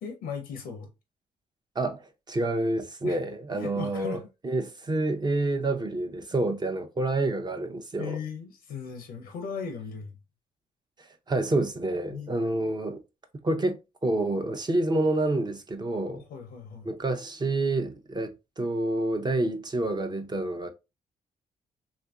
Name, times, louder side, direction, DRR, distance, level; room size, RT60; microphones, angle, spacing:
voice 1, 0.0-0.9 3.0-3.2 3.5-4.3 8.0-10.2 12.1-12.3 16.1-16.9, left 6 dB, 90° left, 0.5 m, -37 dB
voice 2, 1.8-8.2 11.3-13.0 13.4-16.2 16.8-20.7, right 2 dB, 30° right, 0.6 m, -28 dB
2.9 x 2.5 x 2.2 m
cardioid pair, 75°, 15 cm